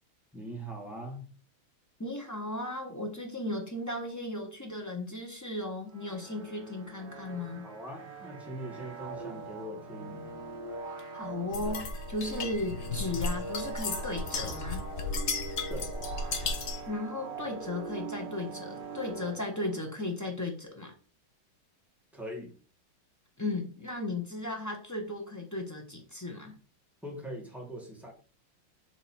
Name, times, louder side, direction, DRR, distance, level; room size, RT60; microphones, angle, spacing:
voice 1, 0.3-1.3 7.6-10.2 15.7-15.9 22.1-22.5 27.0-28.1, right 1 dB, ahead, -2 dB, 1.3 m, -41 dB
voice 2, 2.0-7.7 11.1-14.8 16.9-20.9 23.4-26.5, left 2 dB, 15° left, 1 dB, 0.6 m, -36 dB
sound 1, 5.9-20.0, right 3 dB, 60° right, 1.9 m, -42 dB
sound 2, 11.5-16.9, left 3 dB, 65° left, 0.7 m, -35 dB
7.6 x 3.2 x 4.3 m, 0.38 s
omnidirectional pair, 2.4 m